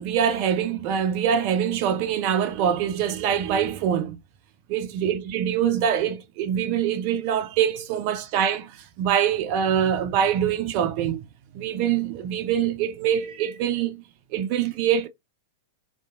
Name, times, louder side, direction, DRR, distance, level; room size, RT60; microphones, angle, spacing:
voice 1, 0.0-4.2 4.7-11.3 11.5-14.0 14.3-15.1, right 9 dB, 45° right, 0.3 m, -24 dB
2.7 x 2.4 x 2.4 m
figure-of-eight pair, 100°, 0 cm